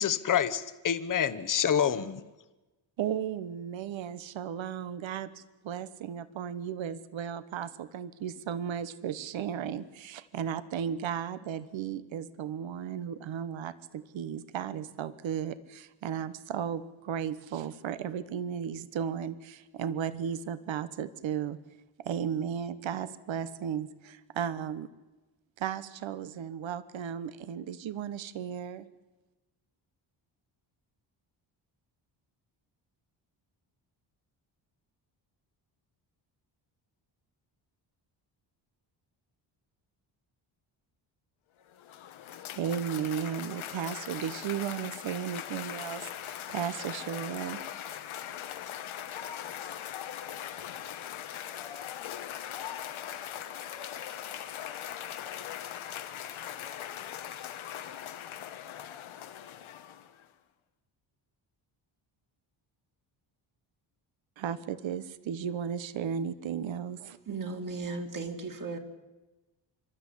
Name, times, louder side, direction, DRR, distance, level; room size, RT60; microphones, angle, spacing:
voice 1, 0.0-2.2, left 8 dB, 40° left, 12 dB, 1.1 m, -27 dB
voice 2, 3.0-21.6 22.0-24.9 25.6-28.9 42.5-47.6 64.4-67.2, right 8 dB, 70° right, 16 dB, 1.2 m, -35 dB
Cheering / Applause, 41.6-60.2, left 10 dB, 90° left, 1.6 m, -40 dB
voice 3, 67.3-68.8, right 3 dB, 40° right, 4 dB, 2.6 m, -36 dB
26.0 x 12.5 x 10.0 m, 1.1 s
cardioid pair, 135°, 47 cm